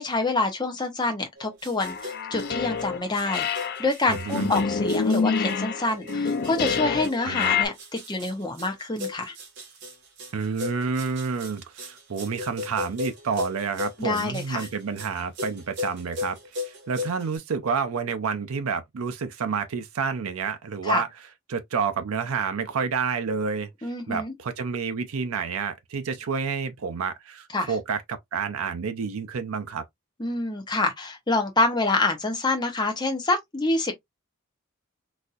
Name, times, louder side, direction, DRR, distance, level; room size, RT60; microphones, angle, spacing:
voice 1, 0.0-7.7 8.1-9.3 14.0-14.7 20.8-21.0 23.8-24.3 27.5-27.7 30.2-33.9, left 2 dB, 20° left, 0.8 m, -26 dB
sound 1, 1.4-17.4, left 3 dB, 55° right, 1.6 m, -37 dB
sound 2, 1.8-3.0 3.3-7.7, left 5 dB, 45° left, 0.4 m, -27 dB
voice 2, 4.1-4.5 7.2-7.6 10.3-21.1 21.5-28.0 28.3-29.8, right 5 dB, 80° right, 0.5 m, -29 dB
4.1 x 2.5 x 2.4 m
head